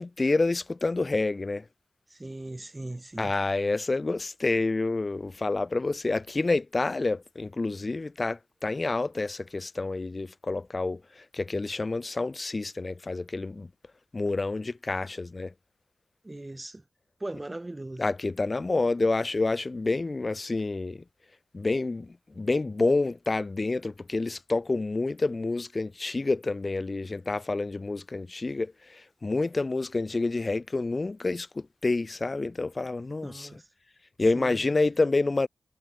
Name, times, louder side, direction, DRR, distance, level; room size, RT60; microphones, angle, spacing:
voice 1, 0.0-1.6 3.2-13.7 14.1-15.5 18.0-21.0 21.5-33.6 34.2-35.5, left 3 dB, 40° left, 0.8 m, -28 dB
voice 2, 2.1-3.3 16.2-16.8 17.2-18.0 33.2-33.7 34.3-34.6, right 2 dB, 25° right, 0.6 m, -39 dB
cardioid pair, 60°, 0 cm